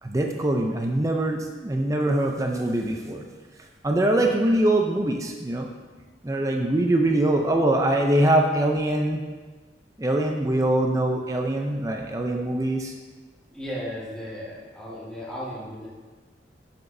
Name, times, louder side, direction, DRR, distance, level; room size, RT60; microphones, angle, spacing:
voice 1, 0.0-3.3 3.8-5.7 6.2-9.3 10.0-12.9, right 1 dB, 20° right, 2 dB, 0.4 m, -23 dB
voice 2, 13.5-15.9, equal, 5° left, -8 dB, 1.7 m, -35 dB
11.0 x 5.9 x 2.7 m, 1.4 s
head